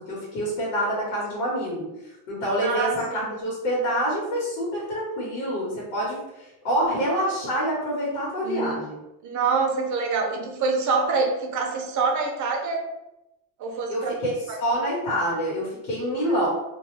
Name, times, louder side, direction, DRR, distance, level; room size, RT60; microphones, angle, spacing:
voice 1, 0.0-1.9 2.3-9.0 13.9-14.3 14.6-16.5, equal, 85° left, -6 dB, 1.4 m, -26 dB
voice 2, 2.6-3.3 8.4-8.8 9.2-12.8 13.6-14.1 14.5-14.6 16.3-16.5, right 4 dB, 40° right, 2 dB, 0.6 m, -26 dB
2.6 x 2.3 x 3.2 m, 0.90 s
cardioid pair, 130°, 47 cm